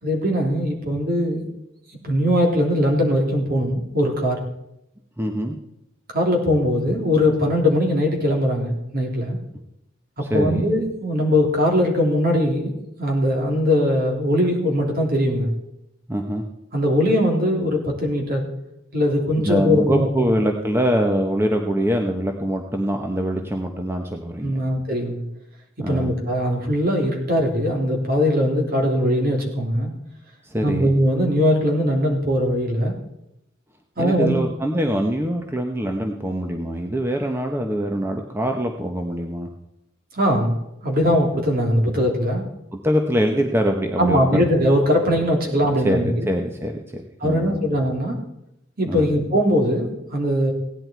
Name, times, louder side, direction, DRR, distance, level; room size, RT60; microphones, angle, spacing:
voice 1, 0.0-1.5 2.0-4.4 6.1-9.4 10.2-12.7 13.0-15.5 16.7-18.5 18.9-20.3 24.4-25.2 25.9-29.9 30.6-32.9 34.0-34.4 40.1-40.6 40.8-42.4 44.0-46.3 47.2-48.2 48.8-50.5, equal, 50° right, 0 dB, 3.4 m, -20 dB
voice 2, 5.2-5.6 10.2-10.7 16.1-16.4 19.4-24.5 25.8-26.1 30.4-30.9 34.0-39.5 42.7-44.4 45.8-47.6 48.9-49.1, equal, 10° right, 3 dB, 1.0 m, -24 dB
17.0 x 10.5 x 4.6 m, 0.84 s
head